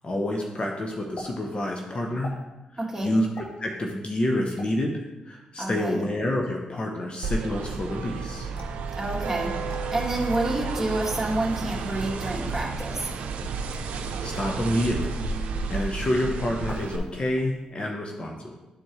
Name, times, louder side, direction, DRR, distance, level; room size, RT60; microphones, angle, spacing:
voice 1, 0.0-2.4 3.0-8.5 14.2-15.2 15.5-18.6, left 1 dB, 40° left, 1 dB, 0.9 m, -28 dB
sound 1, 1.2-1.3 2.2-2.4 3.4-3.6 4.6-4.7 5.6-5.9 8.6-8.8 9.7-9.8 10.8-10.9 11.7-12.2 12.8-12.9 13.6-13.9 14.3-14.5 15.0-15.2 16.7-17.1 17.4-17.8, left 1 dB, 65° left, 1.3 m, -44 dB
voice 2, 2.8-3.1 5.6-6.0 9.0-13.1, right 2 dB, 10° right, -4 dB, 2.4 m, -29 dB
sound 2, 7.2-17.0, right 4 dB, 75° right, 0.6 m, -31 dB
10.0 x 4.4 x 3.2 m, 1.0 s
supercardioid pair, 45°, 3 cm